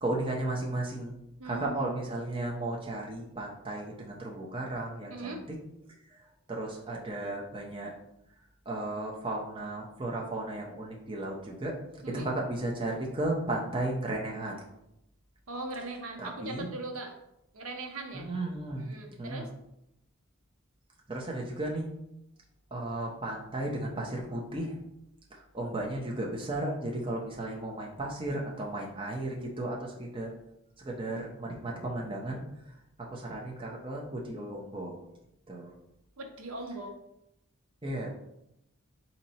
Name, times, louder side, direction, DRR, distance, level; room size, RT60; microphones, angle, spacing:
voice 1, 0.0-5.6 6.5-7.9 8.7-11.7 12.1-14.6 16.2-16.7 18.1-18.9 19.2-19.5 21.1-21.9 22.7-24.8 25.3-30.3 30.8-32.5 33.0-35.0 35.5-35.7 37.8-38.1, right 2 dB, 25° right, -2 dB, 0.7 m, -34 dB
voice 2, 1.4-1.9 5.1-5.4 12.0-12.3 15.5-17.2 17.5-18.3 18.8-19.5 36.2-37.0, right 2 dB, 75° right, 4 dB, 0.7 m, -40 dB
4.2 x 2.9 x 4.2 m, 0.82 s
head